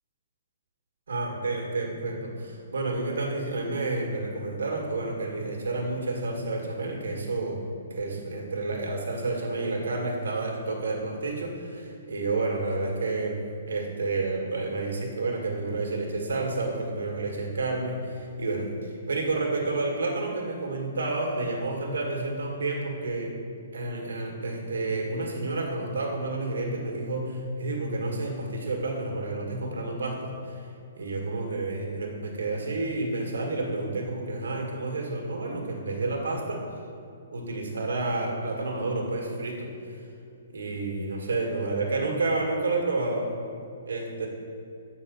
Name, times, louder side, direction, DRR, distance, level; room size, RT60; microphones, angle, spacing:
voice 1, 1.1-7.6 7.9-13.4 13.7-23.3 23.7-30.6 31.0-36.6 37.3-39.7 40.5-43.4 43.9-44.3, right 2 dB, 90° right, 0 dB, 1.7 m, -30 dB
8.3 x 4.1 x 5.2 m, 2.6 s
hypercardioid pair, 155°, 0 cm